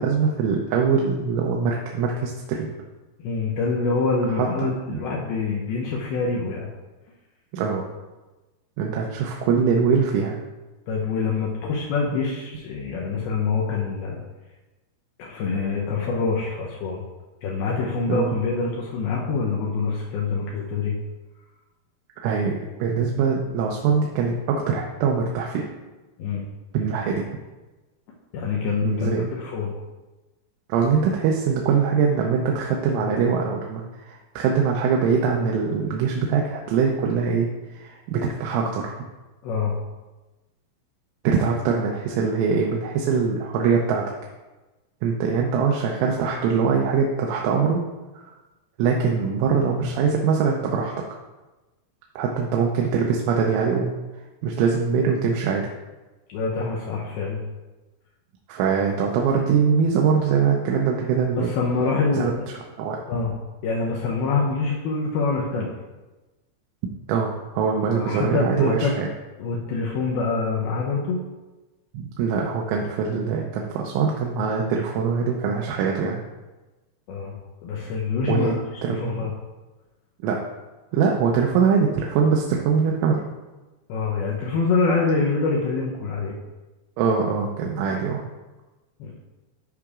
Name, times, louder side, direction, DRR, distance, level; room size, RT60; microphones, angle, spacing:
voice 1, 0.0-2.7 4.4-5.0 7.5-7.9 8.8-10.4 18.1-18.2 22.2-25.7 26.7-27.3 28.8-29.3 30.7-39.0 41.2-44.0 45.0-47.8 48.1-48.3 48.8-50.9 52.2-54.0 54.4-55.7 58.5-61.5 62.1-62.3 62.8-63.0 67.1-69.1 71.9-76.2 78.2-78.5 78.8-79.2 80.2-80.4 80.9-83.2 87.0-88.2, right 6 dB, 85° right, 0 dB, 3.2 m, -23 dB
voice 2, 3.2-6.7 10.9-14.2 15.2-17.0 17.4-21.0 26.2-26.5 28.3-29.1 29.4-29.7 39.4-39.8 56.3-57.5 61.4-62.5 63.1-63.3 63.6-65.7 67.9-68.9 69.4-71.2 77.1-77.3 77.6-79.3 83.9-86.3 89.0-89.1, left 4 dB, 90° left, -3 dB, 2.1 m, -25 dB
13.5 x 5.0 x 2.4 m, 1.1 s
omnidirectional pair, 5.4 m